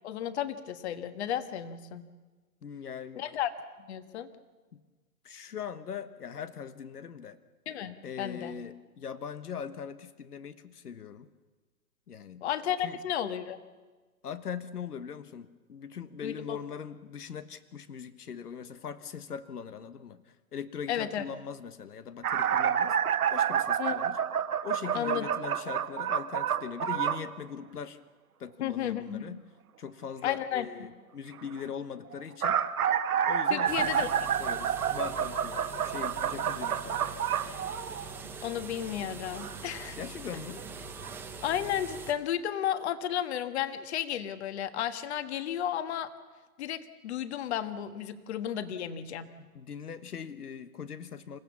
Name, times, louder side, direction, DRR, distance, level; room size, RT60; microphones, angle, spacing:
voice 1, 0.0-2.0 3.1-3.5 3.9-4.3 7.7-8.5 12.4-13.6 16.2-16.6 20.9-21.2 23.8-24.0 24.9-25.3 28.6-29.3 30.2-30.7 33.5-34.1 38.4-40.0 41.4-46.1 46.6-49.3, left 10 dB, 45° left, 11 dB, 1.4 m, -33 dB
voice 2, 2.6-3.2 4.7-4.8 5.2-7.4 8.0-11.3 12.1-12.4 12.8-13.0 14.2-23.0 23.3-24.2 24.6-28.0 28.4-29.4 29.8-32.6 33.3-34.1 34.4-37.0 40.0-40.6 49.5-51.4, left 7 dB, 80° left, 13 dB, 1.3 m, -41 dB
sound 1, 22.2-27.3 32.1-38.3 39.4-39.5 40.6-40.7 41.0-41.1, right 9 dB, 70° right, 1.5 m, -29 dB
sound 2, 33.6-42.1, right 3 dB, 5° right, 0.8 m, -43 dB
27.5 x 15.5 x 7.2 m, 1.3 s
hypercardioid pair, 145°, 45 cm